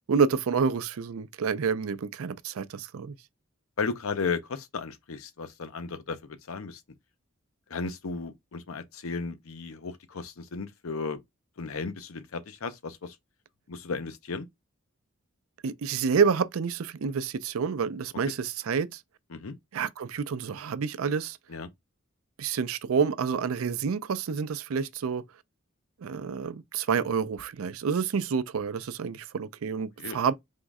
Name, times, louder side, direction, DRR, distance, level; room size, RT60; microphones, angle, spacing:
voice 1, 0.1-3.2 15.6-19.0 19.7-21.4 22.4-25.2 26.0-30.3, right 6 dB, 85° right, 0.4 m, -28 dB
voice 2, 3.8-6.8 7.7-11.2 11.6-13.1 13.7-14.4 19.3-19.5 21.5-21.7 30.0-30.2, left 4 dB, 80° left, 0.7 m, -34 dB
3.7 x 3.1 x 3.5 m
head